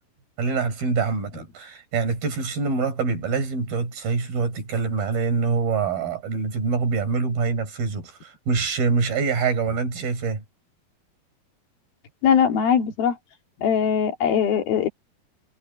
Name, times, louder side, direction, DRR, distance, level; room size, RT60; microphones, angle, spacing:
voice 1, 0.4-10.4, right 4 dB, 85° right, 6.6 m, -25 dB
voice 2, 12.2-13.2 13.6-14.9, left 8 dB, 85° left, 4.4 m, -20 dB
omnidirectional pair, 4.1 m